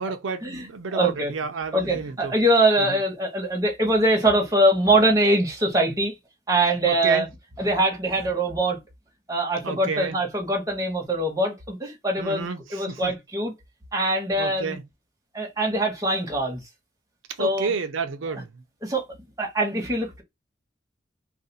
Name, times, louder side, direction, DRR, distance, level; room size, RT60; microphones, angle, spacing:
voice 1, 0.0-2.3 2.8-3.0 6.9-7.3 9.6-10.2 12.2-13.1 14.4-14.8 17.4-18.6, right 5 dB, 85° right, 0.5 m, -30 dB
voice 2, 0.9-1.3 1.7-6.1 6.5-7.3 7.6-8.8 9.3-13.5 13.9-14.8 15.3-16.6 17.4-17.7 18.8-19.0 19.4-20.2, right 1 dB, 15° right, 1.1 m, -23 dB
2.5 x 2.4 x 3.9 m
head